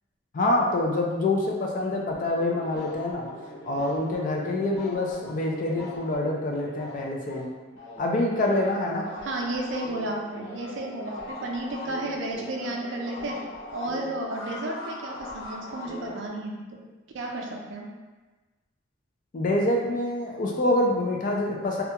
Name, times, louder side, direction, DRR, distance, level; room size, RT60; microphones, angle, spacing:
voice 1, 0.3-3.2 3.6-7.5 8.0-9.1 19.3-21.8, left 1 dB, 40° left, -1 dB, 0.3 m, -26 dB
sound 1, 2.1-8.0 8.3-16.3, left 1 dB, 70° left, 0.9 m, -41 dB
voice 2, 9.2-13.4 13.7-16.6 17.1-17.9, right 1 dB, 65° right, 0 dB, 0.4 m, -32 dB
2.4 x 2.2 x 2.8 m, 1.2 s
head